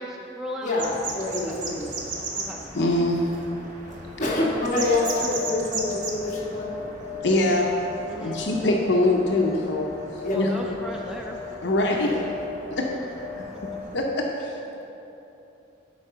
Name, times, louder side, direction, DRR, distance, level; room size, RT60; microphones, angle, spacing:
voice 1, 0.0-0.7 1.4-1.6 2.3-2.6 7.5-7.7 8.1-8.4 10.2-11.4, equal, 5° right, -1 dB, 0.5 m, -37 dB
voice 2, 0.6-1.9 4.2-6.7 10.2-10.4 12.0-12.2, left 2 dB, 40° left, -5 dB, 1.7 m, -26 dB
sound 1, 0.8-14.0, right 3 dB, 40° right, 1.0 m, -37 dB
voice 3, 2.7-3.2 7.2-7.7 8.2-10.5 11.6-12.1 12.7-12.9 13.3-13.4 13.9-14.6, left 1 dB, 65° left, 0 dB, 0.7 m, -23 dB
sound 2, 4.9-13.8, left 6 dB, 25° left, 1.7 m, -38 dB
11.5 x 4.6 x 5.5 m, 3.0 s
head